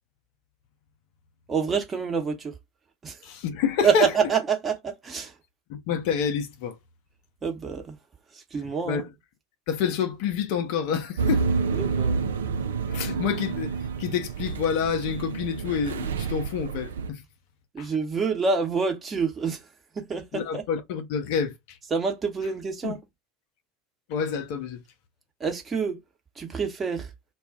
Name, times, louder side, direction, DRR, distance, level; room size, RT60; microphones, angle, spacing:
voice 1, 1.5-2.5 3.0-3.2 3.8-5.3 7.4-7.9 8.5-9.0 11.7-12.2 17.7-19.6 19.9-20.6 21.9-23.0 25.4-26.0 26.4-27.1, right 5 dB, 25° right, 1.0 m, -27 dB
voice 2, 3.2-4.1 5.7-6.8 8.9-9.1 9.7-11.4 12.9-17.2 17.8-17.9 20.3-21.8 22.8-22.9 24.1-24.8, left 7 dB, 55° left, 0.6 m, -28 dB
sound 1, 11.2-17.1, right 5 dB, 70° right, 0.4 m, -28 dB
2.3 x 2.3 x 3.6 m
figure-of-eight pair, 75°, 0 cm